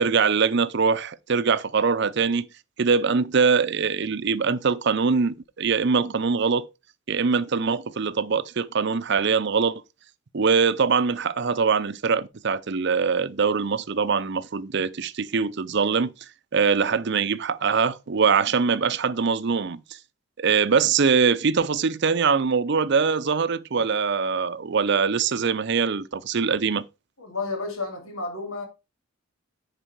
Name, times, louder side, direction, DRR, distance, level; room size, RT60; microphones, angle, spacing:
voice 1, 0.0-2.4 2.8-6.7 7.1-9.8 10.3-16.1 16.5-19.8 20.4-26.8, right 5 dB, 55° right, 0.6 m, -23 dB
voice 2, 27.2-28.7, left 3 dB, 90° left, 3.0 m, -31 dB
10.0 x 4.9 x 4.5 m
head